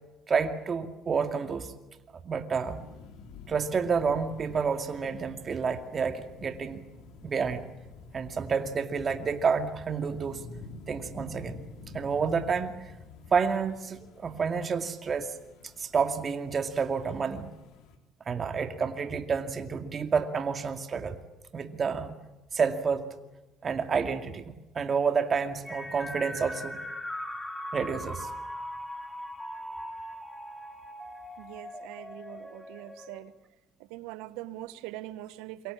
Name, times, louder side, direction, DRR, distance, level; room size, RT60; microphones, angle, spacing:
voice 1, 0.3-1.7 2.2-2.8 3.5-6.8 7.2-7.6 8.1-10.5 10.9-11.6 11.9-12.9 13.3-15.4 15.8-17.5 18.3-21.2 21.5-22.2 22.5-23.2 23.6-26.8 27.7-28.3, right 5 dB, 40° right, 7 dB, 2.3 m, -29 dB
sound 1, 2.6-18.0, left 3 dB, 70° left, 3.7 m, -49 dB
sound 2, 25.6-33.2, left 1 dB, 10° left, 5.0 m, -40 dB
voice 2, 31.4-33.3 33.8-35.7, right 15 dB, 80° right, 14 dB, 1.4 m, -42 dB
27.0 x 24.0 x 7.4 m, 1.1 s
hypercardioid pair, 70°, 0 cm